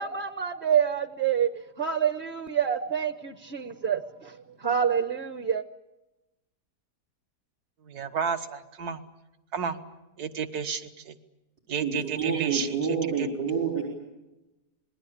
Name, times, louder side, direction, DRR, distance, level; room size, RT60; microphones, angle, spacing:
voice 1, 0.0-4.4 4.6-5.6, right 8 dB, 40° right, 1.0 m, -27 dB
voice 2, 7.9-9.0 9.5-9.8 10.2-11.2 11.7-13.6, right 6 dB, 70° right, 1.8 m, -32 dB
voice 3, 11.8-13.8, right 6 dB, 90° right, 5.3 m, -28 dB
27.0 x 21.0 x 8.5 m
omnidirectional pair, 1.7 m